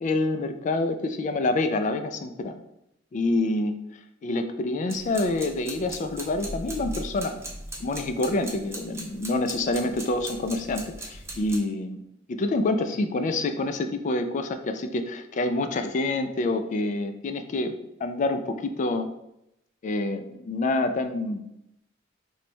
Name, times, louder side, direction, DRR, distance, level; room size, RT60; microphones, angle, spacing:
voice 1, 0.0-2.6 3.1-3.7 4.2-7.4 7.8-12.0 12.3-17.7 18.0-19.1 19.8-21.4, left 2 dB, 40° left, 8 dB, 0.3 m, -27 dB
sound 1, 4.9-11.6, right 1 dB, 15° right, 0.5 m, -39 dB
3.1 x 2.2 x 4.1 m, 0.82 s
head